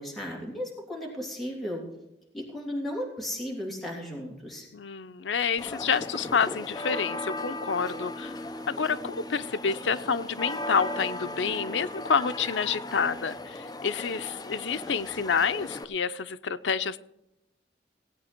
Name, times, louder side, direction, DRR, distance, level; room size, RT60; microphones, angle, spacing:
voice 1, 0.0-1.9 2.3-4.7, equal, ahead, -3 dB, 3.2 m, -35 dB
voice 2, 4.7-8.3 8.7-17.0, left 6 dB, 85° left, 11 dB, 0.6 m, -28 dB
sound 1, 5.6-15.8, left 1 dB, 20° left, 0.7 m, -37 dB
17.5 x 8.7 x 4.4 m, 0.90 s
head